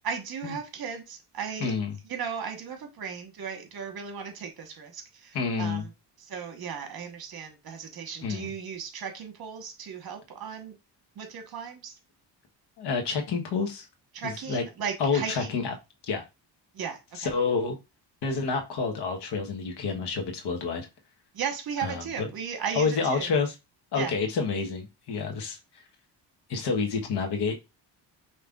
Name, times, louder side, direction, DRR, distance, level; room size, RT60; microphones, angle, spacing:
voice 1, 0.0-1.7 2.1-5.9 6.2-10.7 11.2-11.9 14.1-15.5 16.7-17.3 21.3-23.3 23.9-24.1, right 7 dB, 60° right, 5 dB, 1.3 m, -36 dB
voice 2, 1.6-2.0 5.3-5.9 8.2-8.5 12.8-13.9 14.2-14.6 15.0-15.7 16.1-16.2 17.1-17.8 18.2-20.9 21.8-22.3 22.7-23.5 23.9-25.6 26.5-27.5, left 5 dB, 65° left, 3 dB, 1.2 m, -28 dB
5.3 x 3.1 x 2.4 m, 0.25 s
cardioid pair, 110°, 42 cm